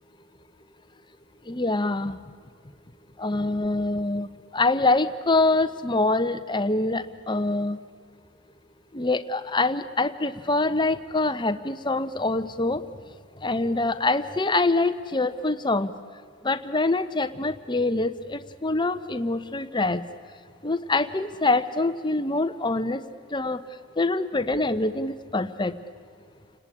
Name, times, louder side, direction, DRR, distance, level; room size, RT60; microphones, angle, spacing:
voice 1, 1.5-2.2 3.2-4.3 4.5-7.8 8.9-12.8 13.4-15.9 16.4-20.0 20.6-23.0 23.3-23.6 24.0-25.7, left 2 dB, 20° left, 11 dB, 1.0 m, -25 dB
30.0 x 19.0 x 10.0 m, 2.2 s
head